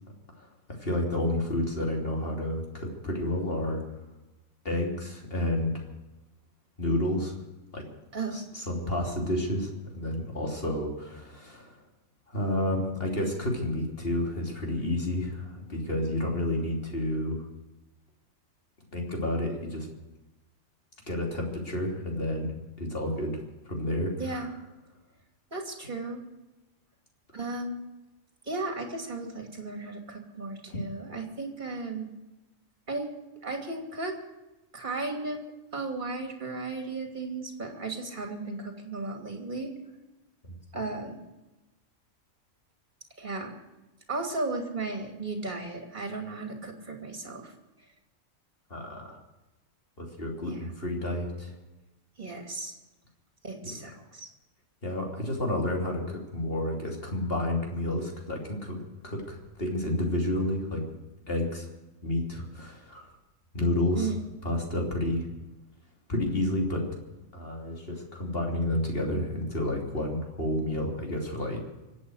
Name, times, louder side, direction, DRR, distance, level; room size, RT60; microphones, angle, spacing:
voice 1, 0.7-3.8 4.7-5.9 6.8-7.3 7.7-7.8 8.3-11.8 12.3-17.4 18.9-19.9 21.1-22.5 22.8-24.5 48.7-49.2 50.0-51.5 53.6-53.7 54.8-60.8 61.3-61.7 62.0-63.1 63.5-64.1 64.4-65.3 66.1-66.8 67.3-71.6, left 1 dB, 45° left, 1 dB, 3.5 m, -30 dB
voice 2, 25.5-26.2 27.3-27.8 28.5-32.1 32.9-33.1 33.4-34.2 34.7-35.4 35.7-39.7 40.7-41.2 43.2-43.5 44.1-47.5 50.5-50.7 52.2-52.7 53.4-54.3 64.0-64.2, right 3 dB, 35° right, 3 dB, 2.9 m, -35 dB
25.0 x 8.6 x 6.4 m, 1.0 s
omnidirectional pair, 1.4 m